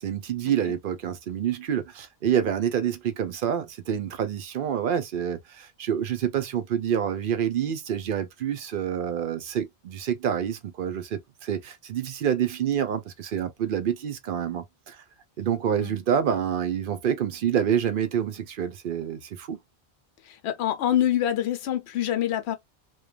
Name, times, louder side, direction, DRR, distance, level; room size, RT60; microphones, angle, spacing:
voice 1, 0.0-15.0 15.4-19.6, right 9 dB, 60° right, 0.6 m, -27 dB
voice 2, 20.4-22.5, left 11 dB, 75° left, 0.9 m, -25 dB
3.1 x 2.2 x 2.2 m
omnidirectional pair, 1.1 m